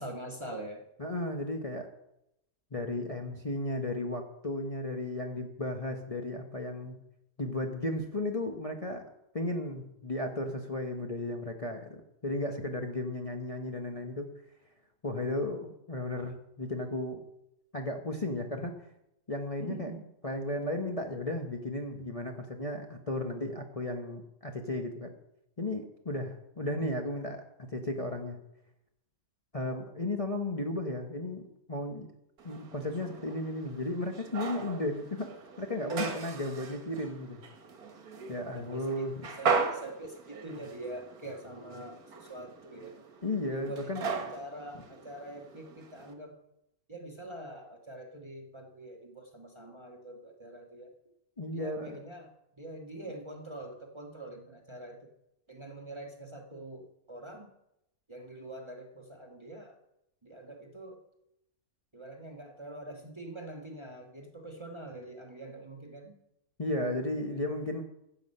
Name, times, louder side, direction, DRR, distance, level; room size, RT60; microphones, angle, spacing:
voice 1, 0.0-0.8 19.6-20.1 38.5-39.1 39.4-42.9 43.5-46.4 46.9-51.0 51.5-55.1 55.5-57.5 58.1-59.8 60.2-61.0 61.9-66.2, right 1 dB, 20° right, 2 dB, 1.2 m, -44 dB
voice 2, 1.0-1.9 2.7-7.0 7.4-9.0 9.3-14.3 15.0-17.2 17.7-18.8 19.3-19.9 20.2-25.1 25.6-28.4 29.5-31.4 31.7-32.1 32.4-35.3 35.6-37.4 38.3-39.3 43.2-44.1 51.4-52.0 66.6-67.8, left 1 dB, 25° left, 3 dB, 1.0 m, -34 dB
sound 1, 32.4-46.1, right 5 dB, 85° right, 1.8 m, -38 dB
15.0 x 8.0 x 5.4 m, 0.84 s
omnidirectional pair, 1.5 m